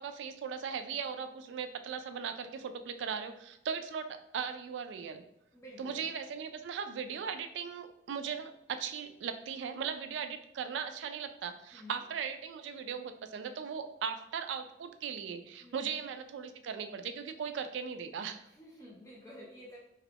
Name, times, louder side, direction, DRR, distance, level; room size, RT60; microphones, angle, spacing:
voice 1, 0.0-5.2 5.8-18.4, right 6 dB, 80° right, 8 dB, 0.3 m, -38 dB
voice 2, 5.5-6.1 11.7-12.1 15.6-16.0 18.4-19.8, left 1 dB, 15° left, -4 dB, 0.4 m, -51 dB
2.8 x 2.4 x 3.3 m, 0.84 s
head